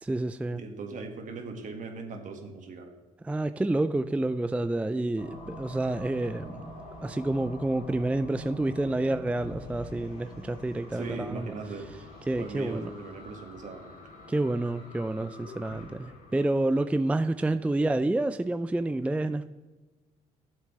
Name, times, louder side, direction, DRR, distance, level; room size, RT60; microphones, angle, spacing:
voice 1, 0.0-0.6 3.2-6.6 7.0-11.5 12.3-12.9 14.3-19.4, right 2 dB, 10° right, 11 dB, 0.4 m, -28 dB
voice 2, 0.5-2.9 10.9-11.9 12.4-13.9, right 4 dB, 55° right, 4 dB, 1.8 m, -39 dB
sound 1, 5.2-17.2, left 1 dB, 65° left, 2.8 m, -46 dB
13.5 x 7.4 x 3.3 m, 1.2 s
supercardioid pair, 70°, 16 cm